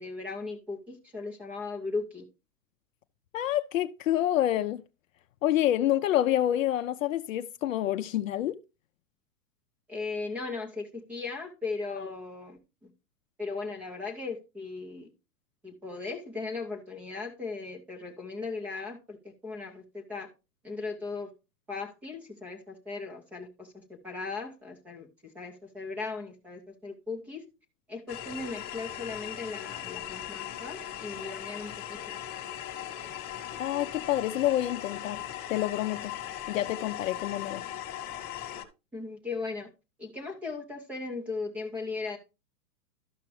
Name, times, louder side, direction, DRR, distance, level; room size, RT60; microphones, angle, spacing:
voice 1, 0.0-2.2 9.9-12.9 13.4-15.1 15.6-19.2 19.4-20.3 20.6-21.3 21.7-23.7 24.0-27.4 27.9-32.0 38.9-39.7 40.0-42.2, left 4 dB, 5° right, 0.5 m, -37 dB
voice 2, 3.3-4.8 5.4-8.6 33.6-35.2 35.5-36.1 36.5-37.6, left 12 dB, 55° left, 0.6 m, -27 dB
sound 1, 28.1-38.6, left 11 dB, 20° left, 1.0 m, -39 dB
12.5 x 5.8 x 3.1 m
hypercardioid pair, 150°, 48 cm